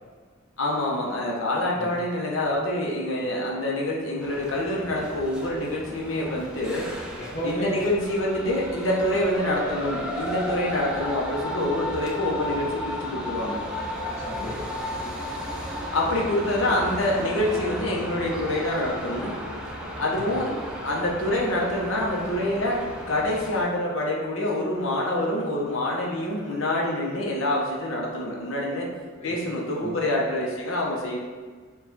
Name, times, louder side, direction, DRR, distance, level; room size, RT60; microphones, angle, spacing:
voice 1, 0.6-6.9 7.4-13.6 15.9-19.4 20.0-20.5 20.8-28.9 29.2-31.2, left 1 dB, 75° left, -3 dB, 0.8 m, -26 dB
sound 1, 4.2-23.6, left 1 dB, 5° right, 0.5 m, -34 dB
voice 2, 6.9-7.9 14.2-14.7 20.1-20.3 29.2-29.4 29.7-30.0, equal, 35° left, -4 dB, 0.8 m, -35 dB
4.6 x 2.3 x 3.9 m, 1.5 s
head